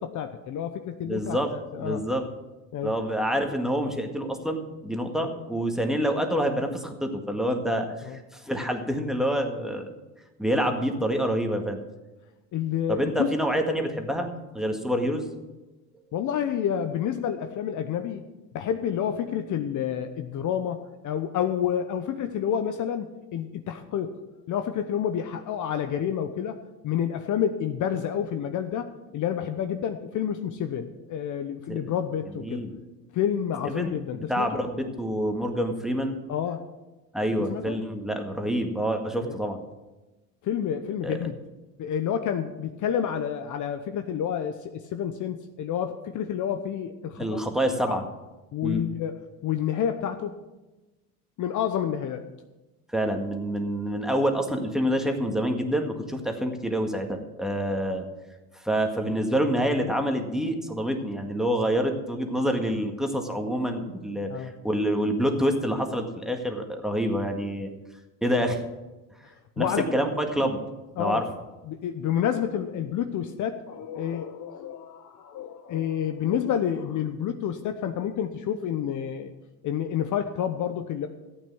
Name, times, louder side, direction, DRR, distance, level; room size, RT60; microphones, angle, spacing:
voice 1, 0.0-1.4 1.7-2.0 2.7-2.9 5.2-5.3 8.0-8.2 12.5-13.4 16.1-18.2 18.5-24.2 24.5-26.6 26.8-32.7 33.1-34.6 36.3-36.6 37.5-37.8 39.2-39.4 40.4-41.3 41.8-44.6 44.9-47.4 47.9-48.0 48.5-50.3 51.4-52.2 64.3-64.5 69.6-70.2 71.0-71.2 71.7-79.3 79.6-81.1, left 9 dB, 45° left, 8 dB, 1.0 m, -29 dB
voice 2, 1.0-2.3 2.8-9.9 10.4-11.8 12.9-14.3 14.5-15.3 31.7-31.9 32.4-32.8 33.6-36.2 37.1-39.6 41.0-41.1 47.2-48.0 48.6-48.8 52.9-58.1 58.5-67.7 68.2-68.6 69.6-70.6 71.0-71.2, equal, ahead, 3 dB, 1.8 m, -27 dB
14.0 x 8.9 x 6.2 m, 1.1 s
supercardioid pair, 95°, 42 cm